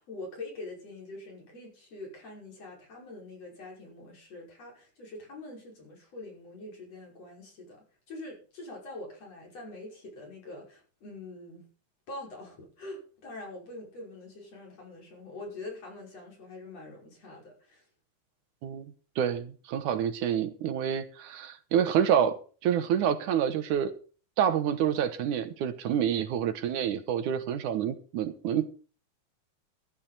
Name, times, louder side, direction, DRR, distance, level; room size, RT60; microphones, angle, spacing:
voice 1, 0.0-11.7 12.1-17.8, left 2 dB, 55° left, -1 dB, 6.8 m, -44 dB
voice 2, 18.6-23.9 24.4-28.7, right 9 dB, 75° right, 10 dB, 2.6 m, -28 dB
14.0 x 11.5 x 4.3 m, 0.38 s
omnidirectional pair, 3.5 m